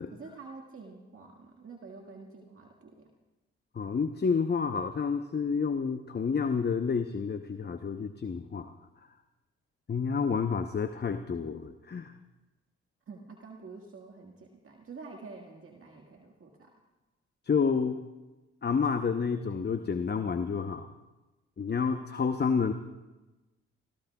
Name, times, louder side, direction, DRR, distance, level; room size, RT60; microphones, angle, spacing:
voice 1, 0.1-3.1 13.1-16.7, right 4 dB, 50° right, 0 dB, 1.9 m, -48 dB
voice 2, 3.7-8.7 9.9-12.1 17.5-18.0 18.6-20.9 21.6-22.7, left 5 dB, 35° left, 8 dB, 0.9 m, -29 dB
26.5 x 17.0 x 2.4 m, 1.1 s
hypercardioid pair, 45°, 29 cm